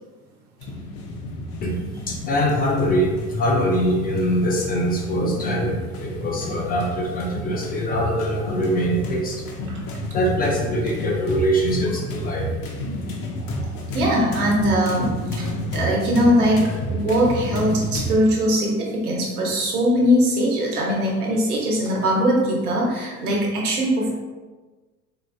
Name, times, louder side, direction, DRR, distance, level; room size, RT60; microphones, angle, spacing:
sound 1, 0.6-18.2, left 1 dB, 55° left, 0.8 m, -30 dB
voice 1, 2.1-9.4 10.1-12.5, equal, 20° left, -1 dB, 0.5 m, -23 dB
voice 2, 13.9-24.1, equal, 75° right, -2 dB, 1.1 m, -21 dB
4.5 x 2.4 x 2.3 m, 1.3 s
hypercardioid pair, 80°, 45 cm